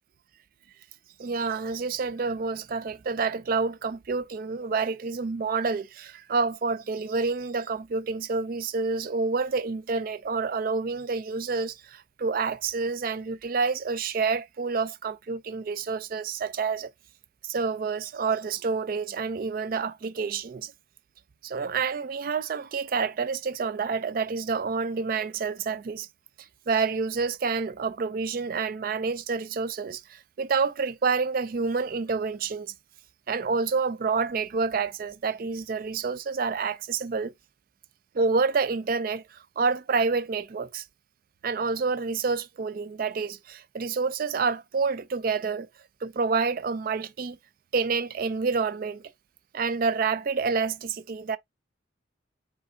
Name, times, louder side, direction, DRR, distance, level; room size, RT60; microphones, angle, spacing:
voice 1, 1.2-16.9 17.5-20.7 21.4-26.1 26.7-32.7 33.3-37.3 38.1-39.2 39.6-40.8 41.4-45.7 46.0-47.4 47.7-49.0 49.5-51.4, right 4 dB, 45° right, 0.3 m, -28 dB
4.9 x 3.8 x 2.5 m
head